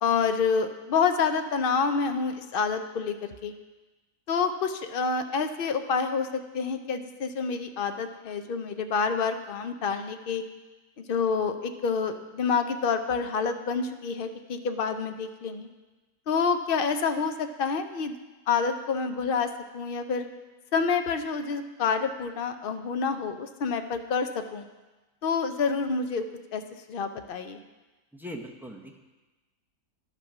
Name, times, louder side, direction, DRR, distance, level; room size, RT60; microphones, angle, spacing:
voice 1, 0.0-3.5 4.3-10.4 11.1-15.7 16.3-18.2 18.5-20.3 20.7-24.6 25.2-26.3 26.5-26.6 26.9-27.6, left 5 dB, 60° left, 7 dB, 0.6 m, -28 dB
voice 2, 28.2-29.0, equal, 5° right, 1 dB, 0.3 m, -40 dB
11.5 x 5.8 x 6.0 m, 1.1 s
omnidirectional pair, 1.6 m